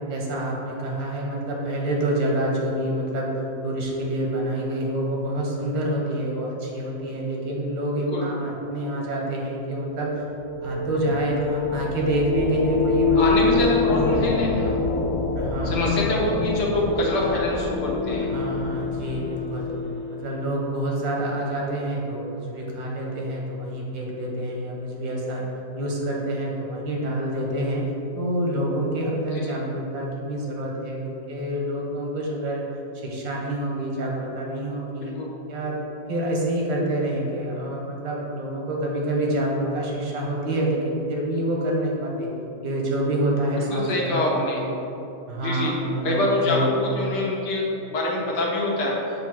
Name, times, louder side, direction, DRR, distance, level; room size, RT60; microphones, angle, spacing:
voice 1, 0.1-3.3 3.6-10.1 10.6-14.2 15.4-15.8 18.3-19.7 20.1-25.5 25.8-27.8 28.1-32.6 32.9-35.1 35.5-35.8 36.1-42.3 42.6-44.6 45.3-46.2 46.4-46.7, right 1 dB, 80° right, -2 dB, 1.8 m, -27 dB
sound 1, 9.9-20.4, left 4 dB, 85° left, 0.7 m, -26 dB
voice 2, 13.2-14.8 15.6-18.3 35.0-35.3 43.6-44.6 45.4-45.8 46.0-49.0, left 1 dB, 70° left, -3 dB, 1.6 m, -25 dB
7.2 x 2.8 x 5.8 m, 2.9 s
omnidirectional pair, 2.0 m